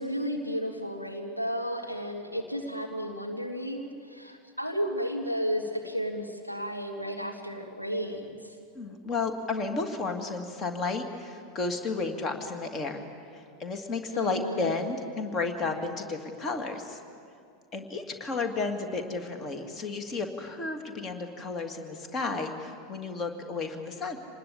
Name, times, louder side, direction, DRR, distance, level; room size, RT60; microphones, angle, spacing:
voice 1, 0.0-8.4 14.1-14.7, equal, 85° left, 2 dB, 2.1 m, -33 dB
voice 2, 8.7-13.1 13.3-17.0 17.7-24.2, left 3 dB, 30° left, 6 dB, 2.2 m, -32 dB
26.0 x 20.0 x 8.6 m, 2.3 s
figure-of-eight pair, 85°, 0 cm